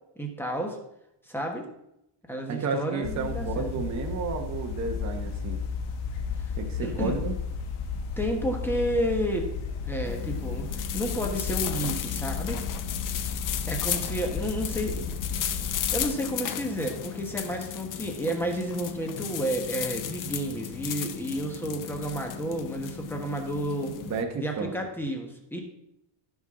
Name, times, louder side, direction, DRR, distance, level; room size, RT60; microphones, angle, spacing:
voice 1, 0.2-0.8 1.3-1.7 2.3-3.7 6.8-7.2 8.2-9.5 9.8-12.6 13.7-15.4 15.9-23.9 24.4-25.6, right 1 dB, 5° left, 2 dB, 1.3 m, -31 dB
voice 2, 2.5-5.6 6.5-7.3 24.0-24.7, right 5 dB, 35° right, 3 dB, 1.0 m, -32 dB
sound 1, 3.0-16.1, left 5 dB, 85° left, 1.5 m, -33 dB
sound 2, 10.0-24.2, left 11 dB, 40° left, 0.6 m, -35 dB
14.5 x 6.3 x 3.8 m, 0.83 s
cardioid pair, 180°, 50 cm